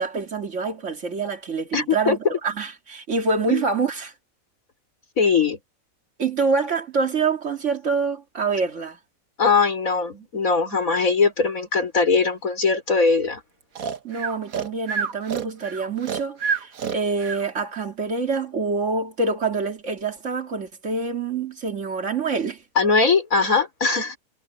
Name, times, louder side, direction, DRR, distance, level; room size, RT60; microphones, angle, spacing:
voice 1, 0.0-4.1 6.2-9.0 14.0-22.6, right 4 dB, 55° right, 2.4 m, -26 dB
voice 2, 1.7-2.2 3.5-3.6 5.2-5.6 9.4-13.4 22.7-24.2, left 4 dB, 75° left, 5.1 m, -20 dB
Breathing, 13.7-17.4, right 6 dB, 80° right, 1.7 m, -28 dB
omnidirectional pair, 1.5 m